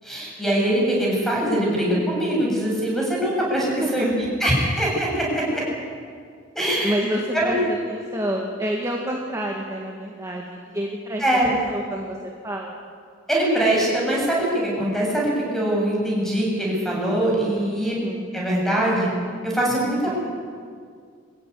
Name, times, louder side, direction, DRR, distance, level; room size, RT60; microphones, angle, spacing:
voice 1, 0.0-5.6 6.5-6.9 7.3-7.6 11.2-11.5 13.3-17.9 18.3-19.1 19.4-20.1, right 1 dB, ahead, -3 dB, 7.7 m, -22 dB
voice 2, 3.6-4.1 6.8-12.8 17.8-18.3 20.0-20.1, equal, 15° right, -1 dB, 2.0 m, -29 dB
23.5 x 15.5 x 9.9 m, 2.1 s
head